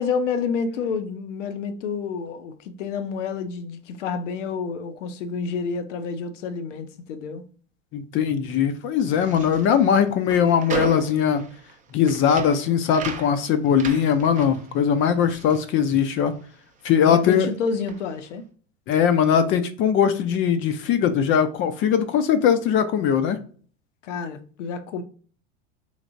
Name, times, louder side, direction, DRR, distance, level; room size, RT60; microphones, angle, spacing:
voice 1, 0.0-7.4 17.0-18.5 24.0-25.0, left 5 dB, 80° left, 0.7 m, -29 dB
voice 2, 7.9-11.4 11.9-16.3 16.8-17.5 18.9-23.4, left 8 dB, 35° left, 0.4 m, -20 dB
sound 1, 9.0-16.5 16.8-18.3, right 7 dB, 20° right, 0.5 m, -37 dB
3.2 x 3.2 x 2.5 m
hypercardioid pair, 105°, 36 cm